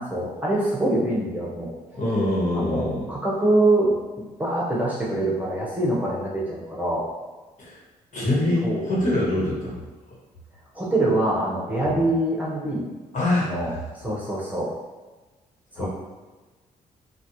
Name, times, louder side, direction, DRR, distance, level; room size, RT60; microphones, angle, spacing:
voice 1, 0.0-1.7 2.5-3.9 4.4-7.1 8.6-8.8 10.7-12.9 13.4-14.7 15.8-15.9, right 1 dB, 10° right, -6 dB, 1.1 m, -24 dB
voice 2, 1.9-3.1 7.6-7.8 8.1-9.8 11.8-12.0 13.1-13.5 15.8-15.9, left 1 dB, 50° left, -6 dB, 1.4 m, -24 dB
4.1 x 2.4 x 3.1 m, 1.2 s
supercardioid pair, 70°, 16 cm